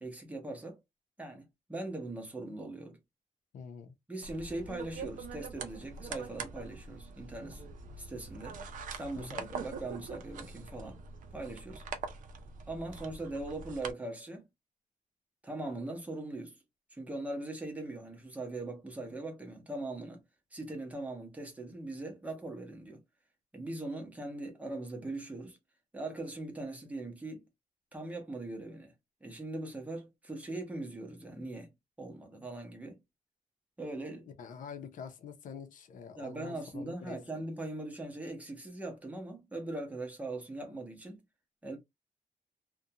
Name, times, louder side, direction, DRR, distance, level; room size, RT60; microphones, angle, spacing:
voice 1, 0.0-0.8 1.2-3.0 4.1-7.7 8.0-8.6 8.9-11.0 11.3-11.8 12.7-14.5 15.4-16.6 16.9-20.2 20.5-23.0 23.5-25.6 25.9-27.4 27.9-28.9 29.2-31.7 32.0-33.0 33.8-34.3 36.1-41.2 41.6-41.8, right 2 dB, 10° right, 0.8 m, -40 dB
voice 2, 3.5-3.9 9.2-9.4 34.2-37.4, left 6 dB, 75° left, 0.6 m, -46 dB
sound 1, 4.2-13.9, right 5 dB, 75° right, 0.5 m, -44 dB
2.5 x 2.2 x 2.7 m
wide cardioid pair, 170°, 14 cm